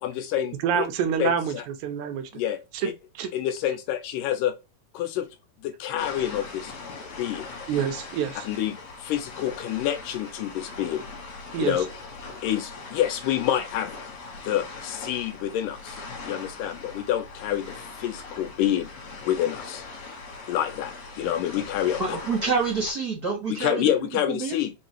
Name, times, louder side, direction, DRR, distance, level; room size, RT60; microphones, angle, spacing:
voice 1, 0.0-0.9 1.2-1.6 2.3-2.9 3.3-4.5 4.9-5.3 5.6-6.7 7.2-7.5 8.5-11.1 11.6-11.9 12.4-13.9 14.4-18.9 19.2-19.8 20.5-22.2 23.5-24.7, left 11 dB, 75° left, 2.2 m, -28 dB
voice 2, 0.6-1.5 1.8-2.3 2.8-2.9 3.2-3.3 7.7-8.4 11.5-11.7, right 8 dB, 75° right, 1.8 m, -26 dB
sound 1, 6.0-22.9, left 3 dB, 55° left, 2.4 m, -40 dB
voice 3, 22.0-23.9 24.3-24.5, right 4 dB, 45° right, 1.2 m, -27 dB
5.4 x 2.8 x 3.0 m
omnidirectional pair, 4.1 m